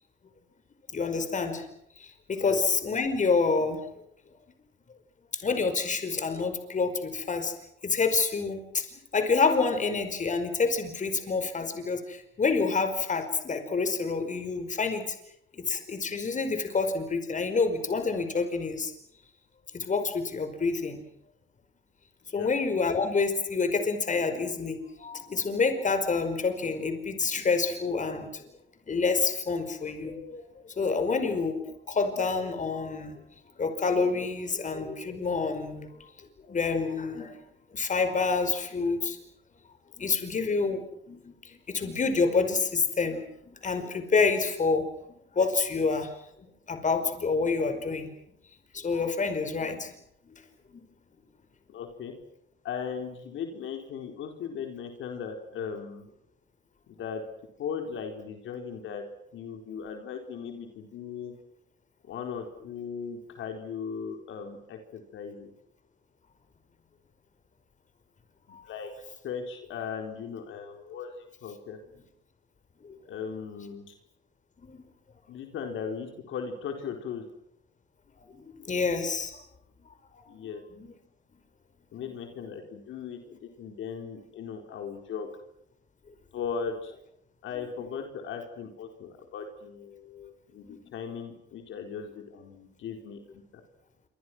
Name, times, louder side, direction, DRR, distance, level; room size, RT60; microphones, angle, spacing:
voice 1, 0.9-1.7 2.0-3.8 5.3-7.5 7.8-15.0 15.5-18.9 19.7-21.0 22.3-28.4 28.9-33.2 33.6-36.1 36.5-37.3 37.7-39.2 40.0-43.2 43.5-44.8 45.1-46.1 46.7-48.1 48.7-49.9 50.3-50.4 50.7-50.8 68.5-68.6 72.8-73.0 74.6-74.8 78.3-79.4 80.1-80.2 80.7-80.9 90.6-90.9, left 4 dB, 40° left, 9 dB, 5.1 m, -28 dB
voice 2, 51.7-52.1 52.6-56.1 56.9-57.2 57.6-59.0 59.3-61.3 62.0-65.5 68.5-68.9 69.2-71.1 71.4-71.8 73.1-73.9 75.3-77.2 80.3-80.6 81.9-85.3 86.3-86.9 87.4-93.4, left 6 dB, 80° left, 4 dB, 4.3 m, -38 dB
27.5 x 25.5 x 6.2 m, 0.74 s
cardioid pair, 90°, 20 cm